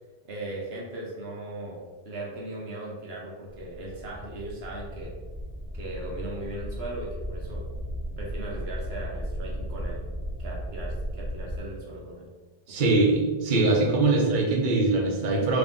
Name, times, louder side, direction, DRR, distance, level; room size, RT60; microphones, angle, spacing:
voice 1, 0.2-5.1 5.7-7.6 8.2-10.0 10.4-12.3 12.7-13.0, right 1 dB, 75° right, -3 dB, 1.0 m, -38 dB
sound 1, 3.5-11.6, equal, 10° left, 1.5 m, -35 dB
voice 2, 12.7-15.6, right 2 dB, 50° right, -3 dB, 0.9 m, -22 dB
3.7 x 3.0 x 3.6 m, 1.3 s
omnidirectional pair, 1.1 m